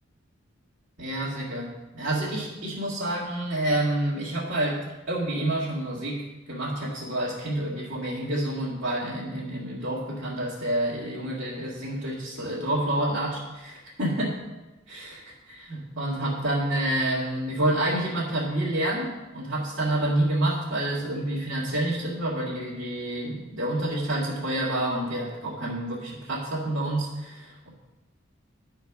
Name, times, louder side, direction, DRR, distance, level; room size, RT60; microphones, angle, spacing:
voice 1, 1.0-1.7 1.9-4.8 5.1-14.4 14.9-15.3 15.7-27.7, right 1 dB, 60° right, -8 dB, 2.1 m, -28 dB
11.0 x 4.6 x 5.9 m, 1.1 s
head